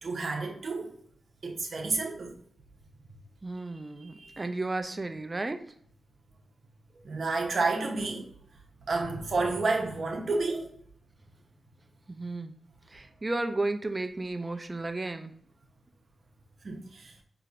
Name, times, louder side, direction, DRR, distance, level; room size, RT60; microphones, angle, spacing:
voice 1, 0.0-1.0 1.4-2.4 4.2-4.4 7.0-8.3 8.8-10.7 16.6-17.1, right 3 dB, 60° right, 0.9 m, -30 dB
voice 2, 3.4-5.6 12.1-12.6 12.9-15.3, right 2 dB, 25° right, 0.5 m, -33 dB
4.8 x 2.8 x 2.6 m
cardioid pair, 75°, 0 cm